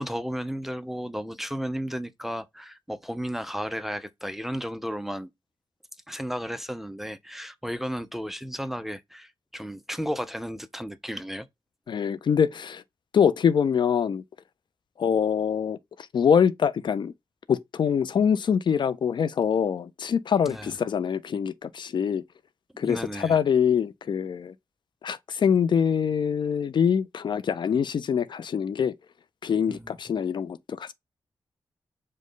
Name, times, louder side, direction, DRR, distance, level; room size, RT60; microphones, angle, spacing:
voice 1, 0.0-5.3 6.1-11.5 20.5-20.7 22.8-23.4 29.7-29.9, equal, 5° right, 0.4 m, -33 dB
voice 2, 11.9-12.8 13.1-14.2 15.0-17.1 17.5-22.2 22.8-24.5 25.0-28.9 29.4-30.9, left 7 dB, 60° left, 0.4 m, -24 dB
5.2 x 2.1 x 3.7 m
wide cardioid pair, 120°, 9 cm